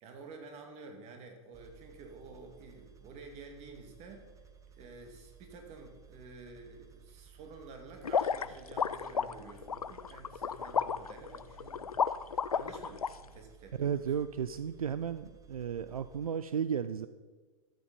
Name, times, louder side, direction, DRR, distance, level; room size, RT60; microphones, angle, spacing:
voice 1, 0.0-4.2 4.7-13.0 13.3-14.0, right 3 dB, 35° right, 4 dB, 2.3 m, -50 dB
sound 1, 1.5-16.3, right 7 dB, 15° right, 1.0 m, -57 dB
sound 2, 8.0-13.1, left 6 dB, 85° left, 0.4 m, -32 dB
voice 2, 13.7-17.1, right 8 dB, 80° right, 13 dB, 0.4 m, -34 dB
13.0 x 7.5 x 5.3 m, 1.4 s
figure-of-eight pair, 100°, 18 cm